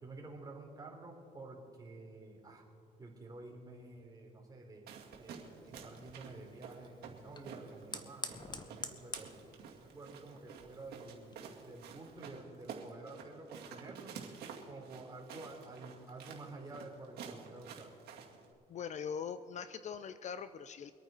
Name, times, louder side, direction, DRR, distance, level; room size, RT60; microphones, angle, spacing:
voice 1, 0.0-2.6 3.0-9.4 9.8-14.2 14.6-17.9, right 2 dB, 20° right, -1 dB, 3.4 m, -50 dB
sound 1, 4.9-18.5, right 6 dB, 70° right, 2.2 m, -51 dB
Fire, 5.0-12.2, left 4 dB, 25° left, 1.1 m, -50 dB
voice 2, 18.7-20.9, left 7 dB, 45° left, 13 dB, 0.5 m, -42 dB
24.0 x 9.1 x 4.4 m, 2.6 s
cardioid pair, 110°, 17 cm